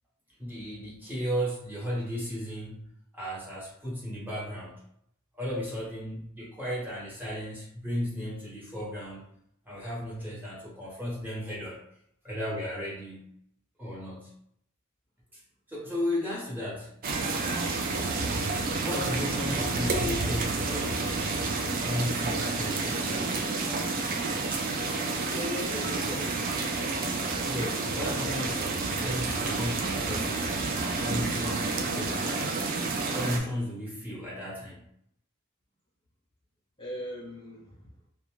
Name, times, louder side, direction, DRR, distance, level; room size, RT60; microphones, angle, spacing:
voice 1, 0.4-2.8 3.1-4.8 5.3-9.2 9.6-11.8 12.2-13.3 13.8-14.3 15.3-15.4 15.7-16.9 18.8-21.2 21.8-23.5 26.1-26.2 27.5-30.7 31.0-32.7 33.1-34.8, equal, 10° right, -6 dB, 0.9 m, -35 dB
sound 1, 17.0-33.4, right 3 dB, 45° right, 0.4 m, -30 dB
voice 2, 25.1-26.5 36.8-37.9, left 1 dB, 20° left, -7 dB, 0.5 m, -39 dB
2.4 x 2.2 x 3.0 m, 0.71 s
head